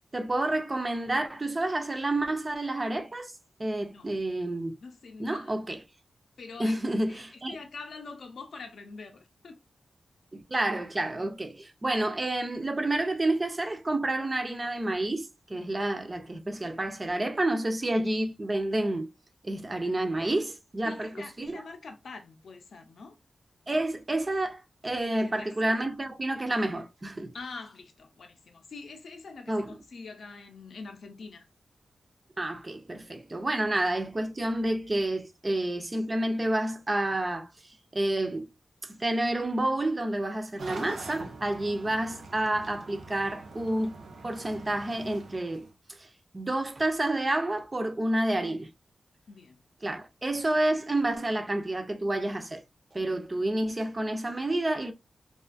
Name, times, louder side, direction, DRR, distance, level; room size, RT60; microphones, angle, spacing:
voice 1, 0.1-3.3 3.6-4.8 5.2-5.8 6.6-7.6 10.3-19.1 19.4-21.6 23.7-27.3 29.5-29.8 32.4-37.5 37.9-38.5 38.9-43.9 44.2-46.1 46.3-48.7 49.8-52.6 52.9-54.9, right 1 dB, 25° right, 0.3 m, -29 dB
voice 2, 4.8-5.5 6.4-6.8 7.1-7.2 7.5-9.6 19.5-19.7 20.8-23.2 25.1-25.5 27.3-31.5 49.3-49.6, left 4 dB, 70° left, 0.5 m, -44 dB
sound 1, 40.6-45.7, right 3 dB, 90° right, 0.4 m, -44 dB
2.4 x 2.3 x 2.4 m
wide cardioid pair, 170°, 0 cm